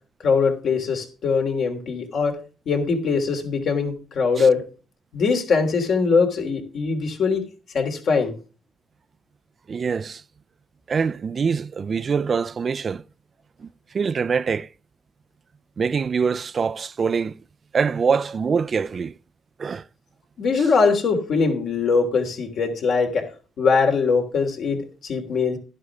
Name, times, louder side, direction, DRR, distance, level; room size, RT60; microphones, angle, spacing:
voice 1, 0.2-2.4 2.6-4.6 5.1-7.4 7.7-8.3 20.4-23.2 23.6-25.6, left 5 dB, 65° left, 3.1 m, -21 dB
voice 2, 9.7-10.2 10.9-13.0 13.9-14.7 15.8-17.3 17.7-19.1 19.6-19.8, right 5 dB, 45° right, 0.4 m, -24 dB
11.5 x 11.0 x 3.5 m
cardioid pair, 90°, 0 cm